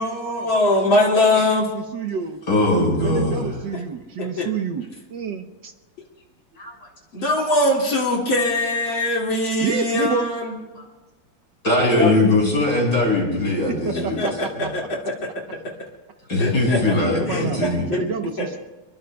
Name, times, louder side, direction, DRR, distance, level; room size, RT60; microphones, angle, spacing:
voice 1, 0.0-1.7 4.2-4.5 7.1-10.5 12.0-12.1 14.2-15.3 16.4-16.9 17.3-18.0 18.4-18.6, left 2 dB, 65° left, -2 dB, 3.2 m, -22 dB
voice 2, 0.8-2.4 3.0-4.8 5.1-5.7 9.6-10.2 13.8-14.7 17.2-17.6 17.9-18.6, right 6 dB, 65° right, 5 dB, 1.5 m, -29 dB
voice 3, 2.5-3.6 6.6-6.7 11.6-14.2 14.6-14.7 16.3-17.9, left 2 dB, 45° left, -1 dB, 5.8 m, -20 dB
26.5 x 22.5 x 2.3 m, 1.2 s
omnidirectional pair, 2.3 m